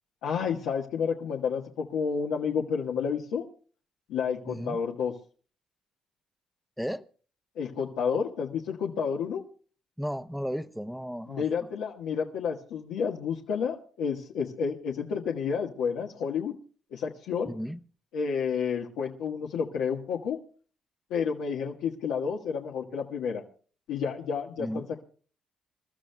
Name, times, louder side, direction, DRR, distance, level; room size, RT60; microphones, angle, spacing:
voice 1, 0.2-3.4 4.1-5.1 7.5-9.4 11.3-16.5 16.9-17.5 18.1-20.4 21.1-23.4 23.9-25.0, left 6 dB, 85° left, 1.4 m, -30 dB
voice 2, 4.5-4.8 6.8-7.0 10.0-11.7 17.5-17.8 24.6-24.9, equal, ahead, 0.8 m, -34 dB
27.5 x 13.0 x 2.3 m
cardioid pair, 85°, 0 cm